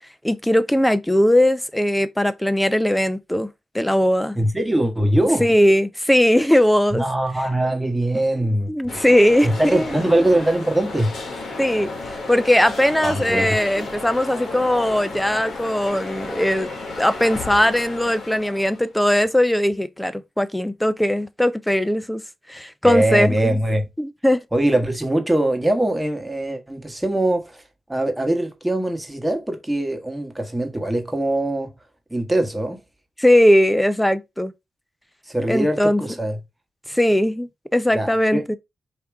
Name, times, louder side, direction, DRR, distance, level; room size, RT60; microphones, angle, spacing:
voice 1, 0.2-3.5 3.7-4.4 5.4-7.0 8.7-10.0 11.6-16.7 17.0-22.2 22.5-23.6 24.0-24.4 33.2-34.5 35.5-36.0 36.9-38.6, left 1 dB, 5° left, 0.5 m, -19 dB
voice 2, 4.3-5.5 6.9-9.0 9.4-11.1 13.0-13.5 22.8-23.9 24.5-27.6 27.9-31.7 32.1-32.8 35.3-36.4 37.9-38.4, right 1 dB, 10° right, 1.3 m, -22 dB
sound 1, 8.9-18.9, left 3 dB, 65° left, 1.6 m, -33 dB
5.0 x 2.8 x 3.4 m
cardioid pair, 70°, 0 cm